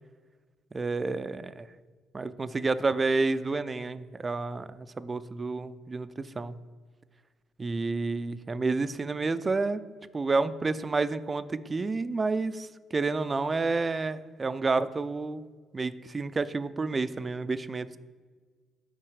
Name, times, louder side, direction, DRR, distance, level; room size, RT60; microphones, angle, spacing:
voice 1, 0.7-1.7 2.1-6.6 7.6-9.8 10.1-15.4 15.7-18.0, right 3 dB, 30° right, 14 dB, 0.3 m, -30 dB
5.7 x 4.6 x 4.8 m, 1.5 s
supercardioid pair, 70°, 0 cm